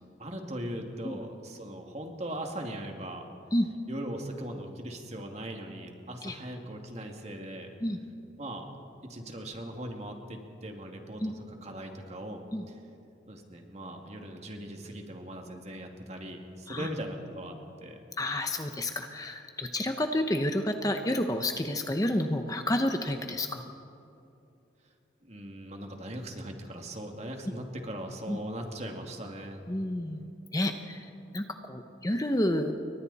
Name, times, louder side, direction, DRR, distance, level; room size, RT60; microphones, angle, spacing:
voice 1, 0.2-3.3 3.9-7.7 8.4-8.7 9.0-12.7 13.3-18.0 25.2-29.7, right 1 dB, 35° right, 2 dB, 2.4 m, -39 dB
voice 2, 18.2-23.6 28.3-28.4 29.7-30.2 30.5-32.8, left 1 dB, 20° left, 6 dB, 0.9 m, -30 dB
30.0 x 23.0 x 4.2 m, 2.7 s
head